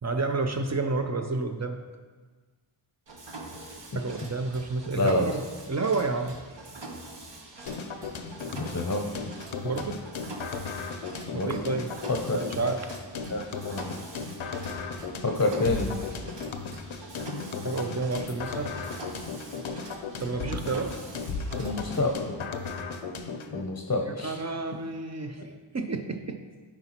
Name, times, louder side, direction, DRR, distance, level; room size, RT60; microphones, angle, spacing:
voice 1, 0.0-1.8 3.9-5.4 5.7-6.3 9.6-10.0 11.3-11.9 12.3-12.9 17.6-18.7 20.2-20.9 24.0-26.4, right 3 dB, 35° right, 6 dB, 0.5 m, -30 dB
Mechanisms, 3.1-22.1, right 2 dB, 65° right, 1.0 m, -44 dB
voice 2, 4.9-5.3 8.5-9.1 11.3-11.6 12.1-12.4 13.3-13.4 13.7-13.9 15.2-15.9 21.6-22.4 23.5-24.4, left 2 dB, 35° left, 3 dB, 0.6 m, -28 dB
sound 1, 7.7-23.7, left 4 dB, 90° left, 0.6 m, -36 dB
9.6 x 4.4 x 2.9 m, 1.4 s
wide cardioid pair, 55°, 47 cm